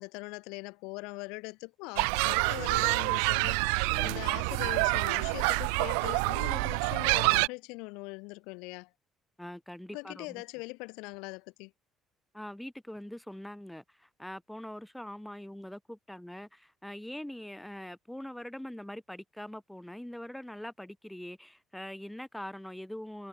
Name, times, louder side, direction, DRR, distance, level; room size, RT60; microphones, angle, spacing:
voice 1, 0.0-3.6 4.0-8.9 9.9-11.7, left 28 dB, 85° left, 4.5 m, -41 dB
sound 1, 2.0-7.5, right 40 dB or more, 85° right, 0.9 m, -27 dB
voice 2, 9.4-10.4 12.3-23.3, left 1 dB, 5° left, 2.7 m, -43 dB
supercardioid pair, 65°, 0 cm